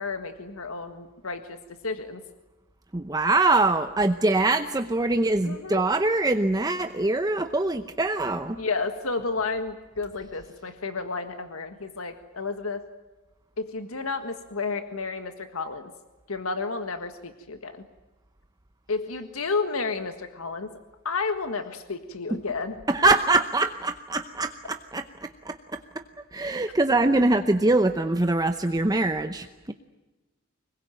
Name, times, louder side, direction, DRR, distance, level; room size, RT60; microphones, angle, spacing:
voice 1, 0.0-1.6 1.8-2.2 5.4-5.8 8.6-12.8 13.6-15.9 16.3-17.8 18.9-20.7 21.1-22.8, left 4 dB, 80° left, 8 dB, 1.7 m, -31 dB
voice 2, 2.9-8.6 22.3-22.4 22.9-26.0 26.3-29.7, right 2 dB, 20° right, 8 dB, 0.8 m, -24 dB
25.0 x 22.0 x 9.1 m, 1.1 s
head